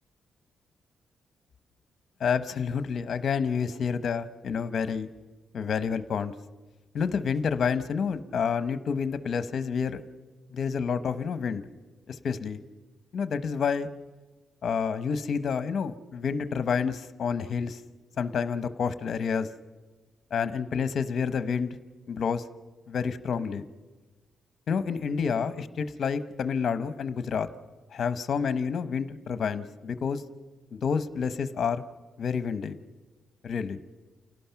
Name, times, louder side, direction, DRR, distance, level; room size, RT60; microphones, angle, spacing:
voice 1, 2.2-5.1 5.5-6.3 6.9-10.0 10.5-11.6 12.1-12.6 13.1-13.9 14.6-17.8 18.2-19.5 20.3-21.8 22.1-22.4 22.9-23.6 24.7-27.5 27.9-30.2 30.7-31.8 32.2-32.7 33.4-33.8, left 6 dB, 50° left, 12 dB, 0.9 m, -29 dB
29.0 x 18.0 x 5.8 m, 1.3 s
wide cardioid pair, 175°, 0 cm